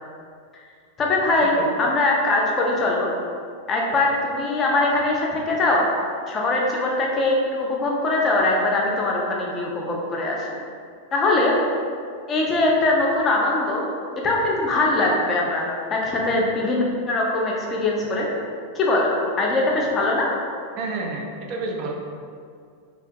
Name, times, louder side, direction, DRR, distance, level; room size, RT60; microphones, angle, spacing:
voice 1, 1.0-3.1 3.7-5.9 6.3-10.5 11.1-11.5 12.3-13.8 14.2-18.3 18.7-20.3, left 2 dB, 25° left, -2 dB, 0.5 m, -22 dB
voice 2, 20.8-21.9, right 3 dB, 40° right, 1 dB, 0.4 m, -29 dB
2.9 x 2.5 x 2.4 m, 2.2 s
figure-of-eight pair, 90°, 0 cm